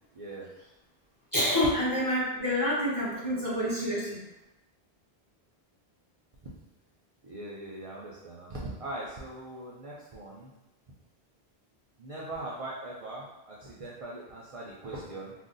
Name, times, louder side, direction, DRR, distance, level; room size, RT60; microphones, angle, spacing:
voice 1, 0.1-0.5 7.2-10.5 12.0-15.3, right 2 dB, 50° right, -5 dB, 0.4 m, -40 dB
voice 2, 1.3-4.2, left 1 dB, 20° left, -8 dB, 0.7 m, -27 dB
2.5 x 2.1 x 3.7 m, 0.95 s
omnidirectional pair, 1.1 m